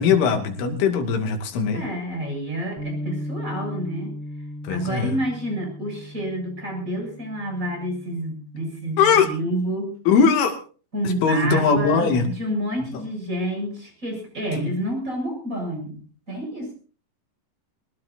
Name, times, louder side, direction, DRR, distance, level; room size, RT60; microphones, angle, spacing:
voice 1, 0.0-1.8 4.6-5.1 9.0-9.3 10.1-10.6 11.0-12.3 12.9-13.0 14.5-14.7, left 5 dB, 85° left, 4 dB, 4.9 m, -20 dB
voice 2, 1.7-4.1 4.7-9.9 10.9-16.0 16.3-16.7, right 1 dB, 15° right, 3 dB, 7.7 m, -29 dB
Bass guitar, 2.8-9.0, left 1 dB, 30° right, 4.5 m, -36 dB
23.0 x 20.0 x 2.7 m, 0.38 s
omnidirectional pair, 5.4 m